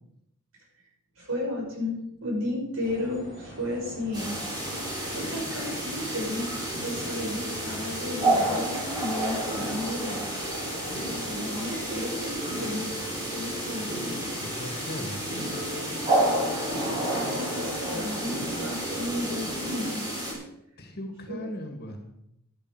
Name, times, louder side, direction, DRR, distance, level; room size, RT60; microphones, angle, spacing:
voice 1, 1.2-4.4 4.7-6.5 6.8-10.2 11.2-12.9 13.3-13.9 16.6-20.0 21.3-21.6, left 1 dB, 65° right, -2 dB, 6.1 m, -34 dB
sound 1, 2.8-19.7, equal, 40° right, 5.8 m, -43 dB
sound 2, 4.1-20.3, right 1 dB, 20° right, 5.1 m, -30 dB
voice 2, 14.4-15.2 19.3-19.9 20.8-22.0, left 1 dB, 45° left, 4 dB, 1.9 m, -39 dB
12.0 x 12.0 x 4.8 m, 0.79 s
head